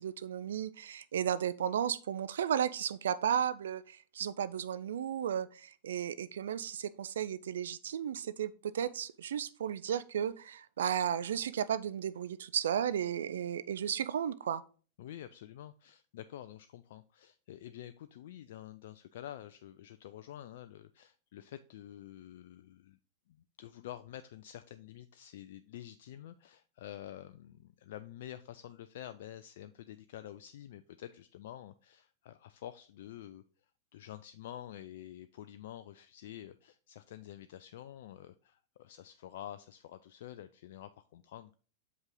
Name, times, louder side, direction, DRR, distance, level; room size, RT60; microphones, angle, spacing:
voice 1, 0.0-14.6, right 9 dB, 65° right, 16 dB, 0.3 m, -34 dB
voice 2, 15.0-23.0 23.3-33.4 33.9-41.6, left 12 dB, 55° left, 11 dB, 0.3 m, -48 dB
6.7 x 5.2 x 3.7 m, 0.38 s
figure-of-eight pair, 90°, 0 cm